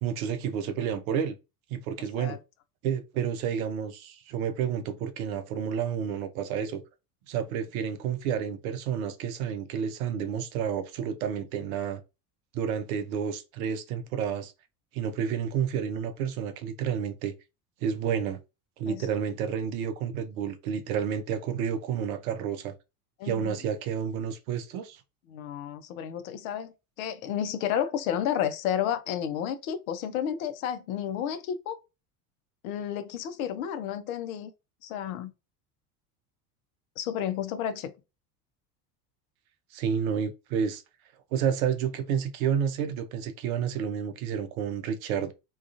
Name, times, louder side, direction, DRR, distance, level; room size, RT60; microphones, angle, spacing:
voice 1, 0.0-1.4 1.7-2.4 2.8-6.8 7.3-12.0 12.5-14.5 14.9-17.3 17.8-18.4 18.8-22.7 23.2-25.0 39.7-40.8 41.3-45.3, right 8 dB, 65° right, 0.6 m, -30 dB
voice 2, 23.2-23.6 25.3-31.8 32.6-34.5 34.8-35.3 37.0-37.9, left 9 dB, 60° left, 0.6 m, -31 dB
2.3 x 2.3 x 2.4 m
figure-of-eight pair, 70°, 46 cm